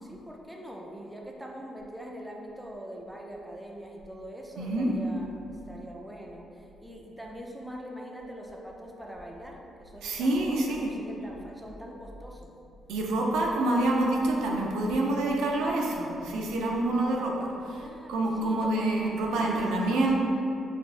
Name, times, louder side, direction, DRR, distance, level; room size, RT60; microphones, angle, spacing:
voice 1, 0.0-12.5 17.7-18.8 19.3-19.6, equal, 10° right, -1 dB, 0.5 m, -43 dB
voice 2, 4.6-4.9 10.0-10.9 12.9-17.8 18.1-20.2, right 2 dB, 85° right, -1 dB, 0.5 m, -27 dB
4.4 x 3.5 x 2.5 m, 2.7 s
cardioid pair, 90°, 0 cm